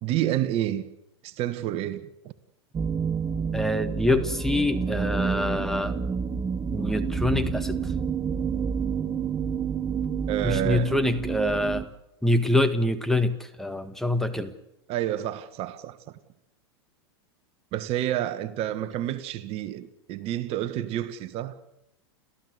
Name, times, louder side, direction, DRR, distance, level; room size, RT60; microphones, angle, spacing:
voice 1, 0.0-0.8 1.2-2.1 10.3-11.0 14.9-16.2 17.7-21.6, right 12 dB, 45° right, 1.6 m, -29 dB
sound 1, 2.7-11.9, right 6 dB, 25° right, 1.2 m, -29 dB
voice 2, 3.5-6.0 6.7-7.8 10.4-11.8 12.2-14.5, left 1 dB, 5° left, 1.6 m, -25 dB
30.0 x 14.5 x 8.1 m
hypercardioid pair, 110°, 14 cm